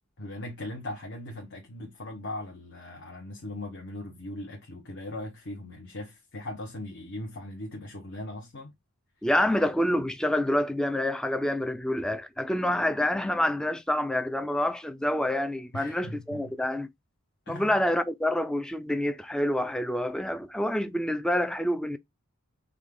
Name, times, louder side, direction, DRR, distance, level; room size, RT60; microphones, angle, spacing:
voice 1, 0.2-8.8 15.7-16.6 17.5-17.7, left 1 dB, 55° left, 0.9 m, -39 dB
voice 2, 9.2-16.9 17.5-22.0, left 1 dB, 5° left, 0.3 m, -27 dB
5.1 x 2.2 x 3.6 m
head